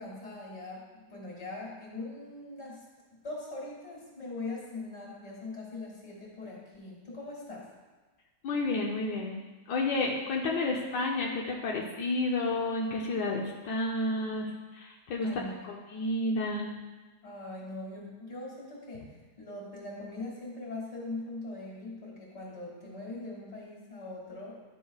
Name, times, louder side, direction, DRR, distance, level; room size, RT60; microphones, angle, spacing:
voice 1, 0.0-2.8 3.2-7.7 15.2-15.5 17.2-24.6, left 2 dB, 40° left, -5 dB, 2.5 m, -41 dB
voice 2, 8.4-9.4 9.7-15.3 15.7-16.7, left 2 dB, 85° left, -1 dB, 1.4 m, -31 dB
10.5 x 6.2 x 2.4 m, 1.3 s
omnidirectional pair, 1.8 m